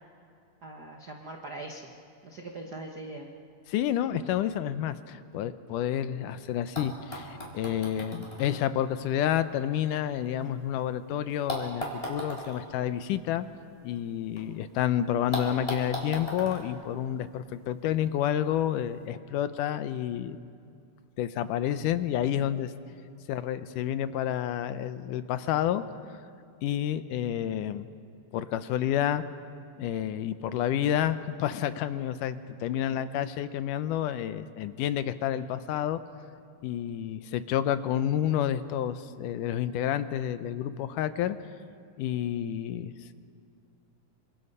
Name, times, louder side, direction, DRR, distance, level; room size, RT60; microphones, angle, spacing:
voice 1, 0.6-1.9 2.2-3.3, right 2 dB, 80° right, 2 dB, 0.9 m, -41 dB
voice 2, 3.7-13.5 13.8-20.4 21.2-22.7 23.3-25.8 26.6-27.9 28.3-29.2 29.8-36.0 36.6-41.4 42.0-43.1, left 10 dB, 75° left, 12 dB, 2.1 m, -29 dB
sound 1, 6.3-6.4 6.7-10.8 11.5-14.4 14.7-14.8 15.3-17.7 18.7-18.8, equal, 10° left, 3.9 m, -39 dB
27.0 x 26.5 x 5.5 m, 2.3 s
omnidirectional pair, 3.9 m